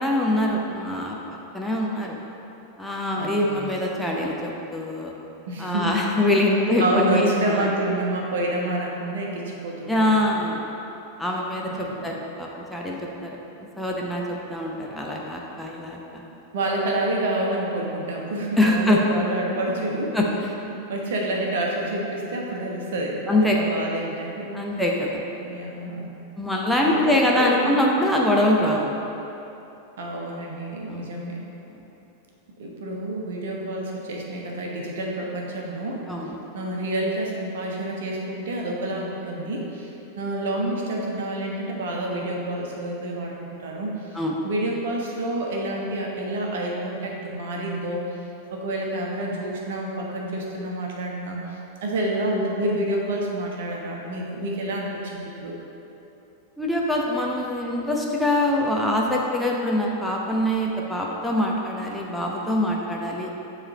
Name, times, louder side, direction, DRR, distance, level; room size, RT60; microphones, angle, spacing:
voice 1, 0.0-2.2 2.8-5.1 5.6-7.7 9.9-10.6 11.2-13.4 13.8-16.2 18.6-19.0 20.1-20.2 23.3-23.6 24.5-25.1 26.4-28.9 30.9-31.0 31.7-31.8 36.1-36.4 44.1-44.3 56.6-63.3, left 1 dB, ahead, -3 dB, 0.7 m, -24 dB
voice 2, 3.2-3.7 5.5-5.9 6.3-6.4 6.8-10.3 11.5-12.1 16.5-20.3 20.7-24.5 25.4-26.1 26.8-27.8 30.0-31.4 32.6-36.0 36.5-43.3 43.6-48.0 48.5-51.4 51.8-55.5, right 1 dB, 55° right, -1 dB, 1.1 m, -28 dB
7.2 x 3.3 x 6.2 m, 2.9 s
figure-of-eight pair, 90°, 0 cm